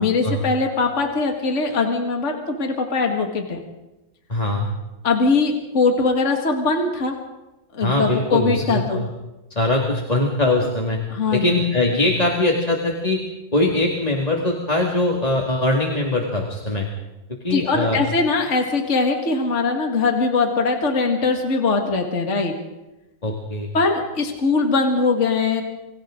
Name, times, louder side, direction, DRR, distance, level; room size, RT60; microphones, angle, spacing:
voice 1, 0.0-3.6 5.0-7.2 7.7-9.0 11.1-11.5 17.5-22.5 23.7-25.6, left 4 dB, 40° left, 3 dB, 2.3 m, -21 dB
voice 2, 4.3-4.7 7.8-9.1 9.5-11.0 11.3-13.2 13.5-16.9 17.4-18.0 23.2-23.7, left 2 dB, 20° left, -1 dB, 2.2 m, -21 dB
28.0 x 24.5 x 3.9 m, 1.0 s
omnidirectional pair, 2.1 m